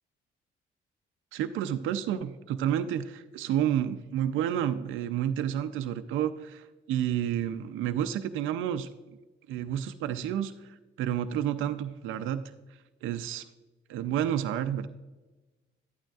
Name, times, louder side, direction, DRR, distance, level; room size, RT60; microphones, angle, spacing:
voice 1, 1.3-9.2 9.5-12.4 13.0-13.5 13.9-14.9, right 10 dB, 85° right, 9 dB, 0.5 m, -30 dB
11.0 x 9.0 x 2.3 m, 1.2 s
cardioid pair, 90°, 20 cm